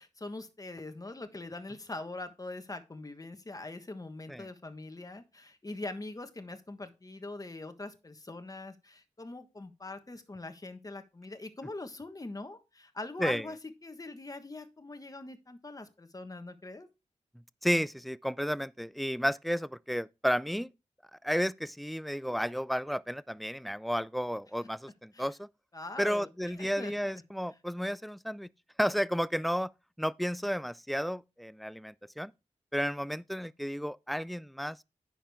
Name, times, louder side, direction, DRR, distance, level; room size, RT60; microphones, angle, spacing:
voice 1, 0.0-16.9 25.1-25.3 25.7-27.1, left 2 dB, 30° left, 1.3 m, -43 dB
voice 2, 17.6-20.7 21.2-25.5 26.0-28.5 28.8-29.7 30.0-32.3 32.7-34.8, equal, ahead, 0.3 m, -32 dB
9.9 x 6.6 x 3.5 m
wide cardioid pair, 80°, 13 cm